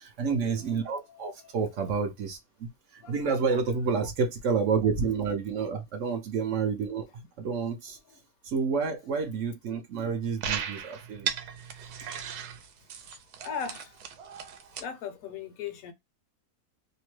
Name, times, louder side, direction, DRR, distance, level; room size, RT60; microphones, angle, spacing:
voice 1, 0.0-8.0 8.4-11.3, right 5 dB, 65° right, 0.8 m, -29 dB
sound 1, 10.4-14.8, right 8 dB, 85° right, 1.1 m, -36 dB
voice 2, 13.4-13.9 14.8-15.9, left 7 dB, 70° left, 1.0 m, -38 dB
2.8 x 2.1 x 3.0 m
omnidirectional pair, 1.6 m